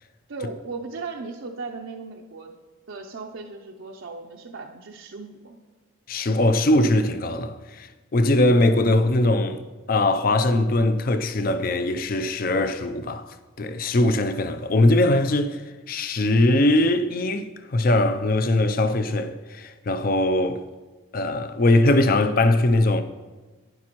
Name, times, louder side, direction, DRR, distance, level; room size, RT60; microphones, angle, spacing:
voice 1, 0.3-2.5 2.9-5.6, right 4 dB, 70° right, 0.5 m, -37 dB
voice 2, 6.1-9.6 9.9-13.3 13.6-15.6 15.9-20.6 21.1-23.0, left 1 dB, 45° left, 0.4 m, -21 dB
11.5 x 9.5 x 3.0 m
head